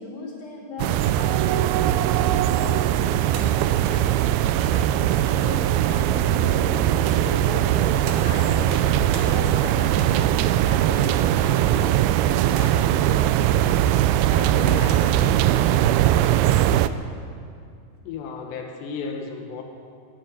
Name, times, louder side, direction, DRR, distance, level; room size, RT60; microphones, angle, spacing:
voice 1, 0.0-6.9 7.3-16.4, left 3 dB, 55° left, -2 dB, 5.2 m, -37 dB
sound 1, 0.8-16.9, right 12 dB, 80° right, 2.3 m, -20 dB
sound 2, 3.3-6.3 7.0-8.2 8.6-9.3 9.7-11.4 12.0-12.9 13.5-15.5 16.2-16.9 17.9-18.0, right 5 dB, 60° right, 2.7 m, -39 dB
sound 3, 4.0-9.0, right 2 dB, 40° right, 2.6 m, -39 dB
voice 2, 18.0-19.6, left 5 dB, 85° left, 2 dB, 3.4 m, -33 dB
16.0 x 9.1 x 9.8 m, 2.3 s
omnidirectional pair, 4.8 m